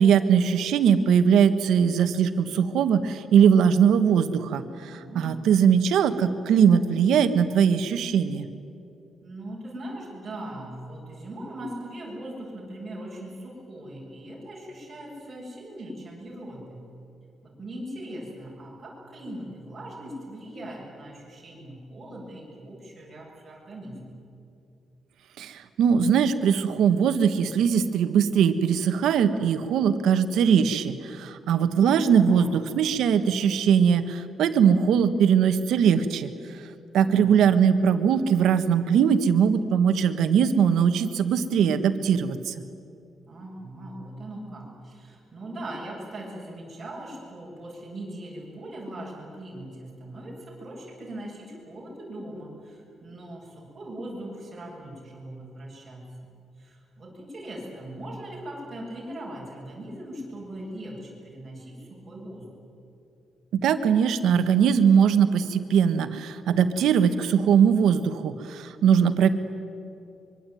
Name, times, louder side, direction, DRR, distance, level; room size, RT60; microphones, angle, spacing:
voice 1, 0.0-8.5 25.4-36.3 36.9-42.5 63.5-69.3, right 7 dB, 80° right, 9 dB, 1.6 m, -21 dB
voice 2, 4.9-5.4 9.2-16.8 17.4-24.1 32.1-32.6 36.9-37.5 43.3-56.0 56.6-62.5, right 1 dB, 20° right, -3 dB, 7.9 m, -40 dB
24.5 x 24.0 x 9.3 m, 2.6 s
cardioid pair, 170°, 0 cm